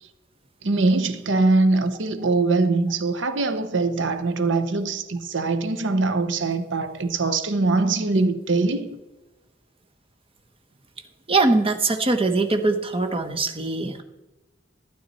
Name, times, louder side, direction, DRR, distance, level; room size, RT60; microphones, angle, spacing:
voice 1, 0.6-8.9, right 3 dB, 70° right, 0.8 m, -22 dB
voice 2, 11.3-14.0, right 3 dB, 30° right, 1.0 m, -22 dB
12.0 x 9.6 x 4.1 m
head